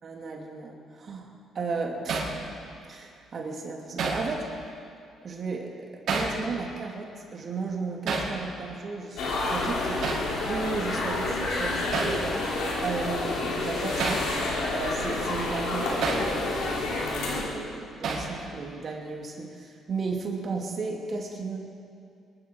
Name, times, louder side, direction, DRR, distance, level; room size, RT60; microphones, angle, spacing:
voice 1, 0.0-1.3 1.5-2.3 2.9-4.5 5.2-10.0 10.5-21.6, right 4 dB, 45° right, 0 dB, 2.8 m, -35 dB
Hammer, 2.1-2.3 4.0-4.3 6.1-6.4 8.1-8.3 10.0-10.3 11.9-12.2 14.0-14.3 16.0-16.3 18.0-18.3, right 4 dB, 70° right, 5.1 m, -28 dB
sound 1, 9.2-17.4, left 2 dB, 80° left, 3.6 m, -29 dB
25.0 x 12.0 x 4.7 m, 2.4 s
cardioid pair, 95°, 0 cm